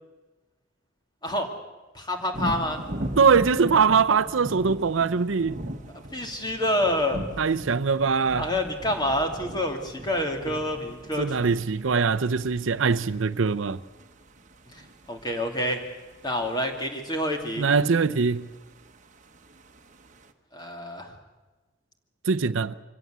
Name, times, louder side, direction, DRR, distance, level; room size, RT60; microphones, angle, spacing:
voice 1, 1.9-2.8 6.1-7.2 8.3-11.6 15.1-15.8 16.2-17.7 20.5-21.1, left 1 dB, 20° left, 2.7 m, -27 dB
sound 1, 2.3-20.3, right 1 dB, 40° right, 1.3 m, -40 dB
voice 2, 3.2-5.6 7.4-8.5 11.2-13.8 17.6-18.5 22.2-22.7, right 5 dB, 80° right, 0.6 m, -22 dB
25.0 x 16.5 x 8.1 m
head